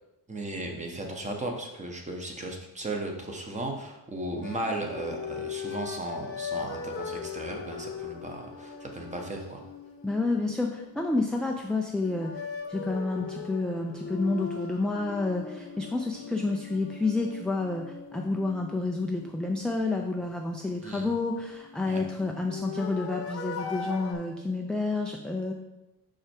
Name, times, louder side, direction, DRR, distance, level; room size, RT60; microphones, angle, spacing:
voice 1, 0.3-9.6 20.8-21.1 21.8-22.0, right 1 dB, 20° right, 2 dB, 1.0 m, -36 dB
sound 1, 4.4-11.5 12.0-19.8 21.5-24.1, left 6 dB, 35° left, 0.9 m, -39 dB
voice 2, 10.0-12.3 12.7-25.5, left 3 dB, ahead, 1 dB, 0.3 m, -29 dB
5.7 x 4.9 x 4.4 m, 0.95 s
cardioid pair, 145°, 38 cm